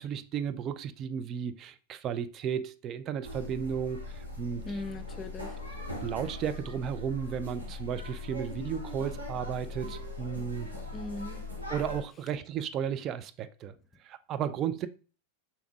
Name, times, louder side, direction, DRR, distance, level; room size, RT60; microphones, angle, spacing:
voice 1, 0.0-4.8 6.0-10.7 11.7-13.7 14.0-14.9, right 8 dB, 30° right, 0.4 m, -34 dB
sound 1, 3.2-12.0, left 2 dB, 85° right, 2.3 m, -40 dB
voice 2, 4.6-5.6 10.9-11.4, left 2 dB, 20° left, 0.6 m, -39 dB
7.0 x 5.9 x 2.3 m
figure-of-eight pair, 90°, 0 cm